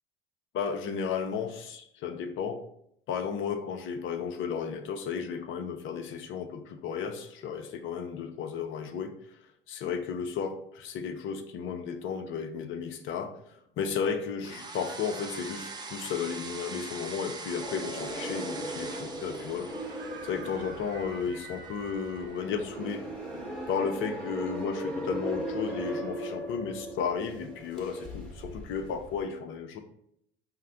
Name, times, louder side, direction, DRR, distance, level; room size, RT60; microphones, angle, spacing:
voice 1, 0.5-2.6 3.1-9.1 9.7-23.0 23.7-29.8, left 6 dB, 45° left, 8 dB, 0.6 m, -34 dB
sound 1, 14.4-22.6, right 3 dB, 15° right, 0.6 m, -43 dB
sound 2, 17.6-29.2, equal, ahead, 1.2 m, -38 dB
Nightgaunt screams, 19.0-25.9, right 5 dB, 40° right, 0.9 m, -50 dB
5.6 x 2.1 x 3.7 m, 0.73 s
figure-of-eight pair, 65°, 29 cm